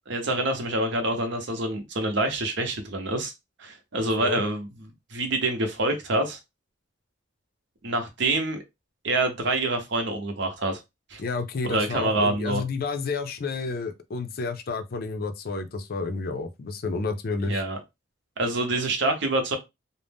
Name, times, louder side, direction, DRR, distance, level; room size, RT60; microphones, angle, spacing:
voice 1, 0.1-3.3 3.6-6.4 7.8-8.6 9.0-10.8 11.1-11.2 11.6-12.6 17.4-17.8 18.4-19.6, right 2 dB, 65° right, 0.8 m, -26 dB
voice 2, 11.2-17.6, left 4 dB, 50° left, 0.4 m, -30 dB
2.5 x 2.1 x 3.4 m
head